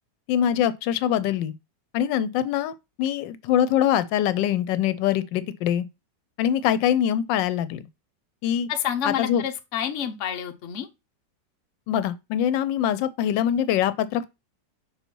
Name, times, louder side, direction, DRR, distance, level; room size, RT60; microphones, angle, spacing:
voice 1, 0.3-1.5 1.9-5.9 6.4-7.9 8.4-8.7 9.0-9.4 11.9-14.3, left 10 dB, 85° left, 1.3 m, -23 dB
voice 2, 8.7-10.9, left 8 dB, 50° left, 1.0 m, -28 dB
5.6 x 4.0 x 4.5 m
omnidirectional pair, 1.9 m